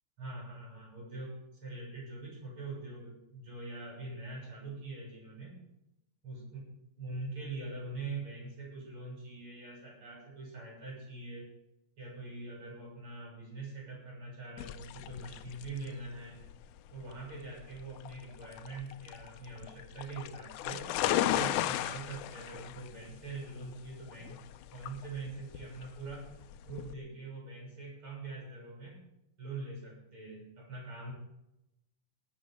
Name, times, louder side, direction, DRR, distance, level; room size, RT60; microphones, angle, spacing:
voice 1, 0.2-5.6 6.2-6.6 7.0-11.5 12.0-16.4 16.9-24.5 24.7-26.3 26.7-29.0 29.4-31.1, right 3 dB, 35° right, -2 dB, 7.0 m, -43 dB
sound 1, 14.6-26.9, left 12 dB, 80° left, 1.8 m, -36 dB
20.0 x 8.6 x 5.1 m, 0.87 s
omnidirectional pair, 4.1 m